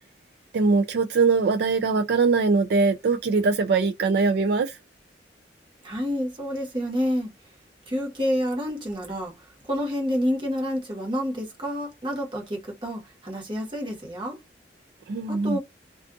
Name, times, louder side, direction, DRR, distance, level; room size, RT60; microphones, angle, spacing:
voice 1, 0.5-4.8 15.1-15.6, right 4 dB, 65° right, 0.3 m, -22 dB
voice 2, 5.8-7.3 7.9-9.3 9.7-14.4 15.3-15.6, equal, 25° right, 1.1 m, -28 dB
2.4 x 2.3 x 2.5 m
head